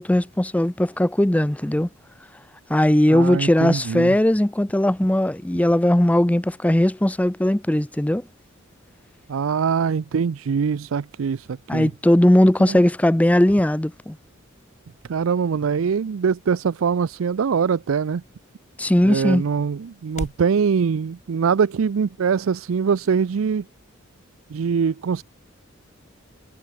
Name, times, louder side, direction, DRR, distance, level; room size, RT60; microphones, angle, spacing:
voice 1, 0.0-1.9 2.7-8.2 11.7-14.2 18.8-19.4, left 1 dB, 5° left, 0.5 m, -18 dB
voice 2, 3.1-4.2 9.3-11.9 12.6-12.8 15.1-18.2 19.0-23.6 24.5-25.2, right 6 dB, 80° right, 0.4 m, -23 dB
sound 1, 14.3-20.5, left 1 dB, 35° left, 2.7 m, -44 dB
head